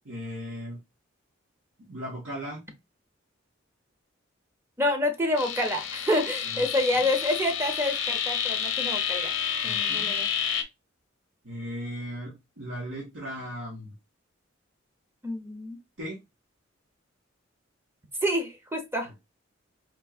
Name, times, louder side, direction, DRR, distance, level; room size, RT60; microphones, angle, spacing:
voice 1, 0.0-0.8 1.9-2.6 6.4-6.6 9.6-10.1 11.4-13.9 16.0-16.2, equal, 80° right, 1.6 m, -37 dB
voice 2, 4.8-9.3 9.6-10.3 15.2-15.8 18.2-19.2, left 1 dB, 15° right, 0.8 m, -28 dB
sound 1, 5.4-10.6, left 8 dB, 70° left, 0.7 m, -29 dB
4.5 x 3.1 x 2.4 m
head